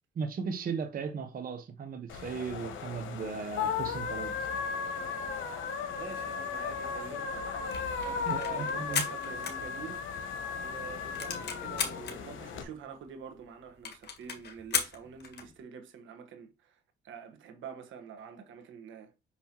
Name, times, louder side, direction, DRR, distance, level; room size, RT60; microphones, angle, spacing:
voice 1, 0.2-4.4 8.3-9.0, right 6 dB, 45° right, 0.8 m, -36 dB
sound 1, 2.1-12.6, left 6 dB, 80° left, 1.1 m, -36 dB
voice 2, 5.9-7.4 8.0-10.0 10.6-19.1, right 7 dB, 75° right, 1.3 m, -46 dB
sound 2, 7.7-10.2 10.6-10.7 10.9-12.2 12.8-12.9 13.0-13.1 13.4-13.5 13.8-15.5, left 6 dB, 55° left, 1.7 m, -35 dB
6.0 x 5.6 x 2.9 m
cardioid pair, 90°, 20 cm